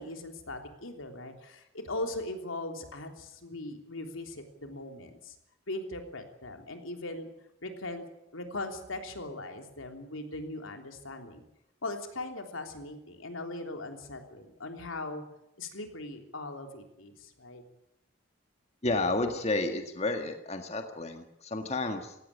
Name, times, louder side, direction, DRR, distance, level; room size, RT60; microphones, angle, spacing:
voice 1, 0.0-5.3 5.7-7.3 7.6-8.1 8.3-11.4 11.8-15.2 15.6-17.6, left 2 dB, 85° left, 5 dB, 3.4 m, -39 dB
voice 2, 18.8-22.2, left 2 dB, 30° left, 5 dB, 1.8 m, -31 dB
17.5 x 16.5 x 10.0 m, 0.82 s
head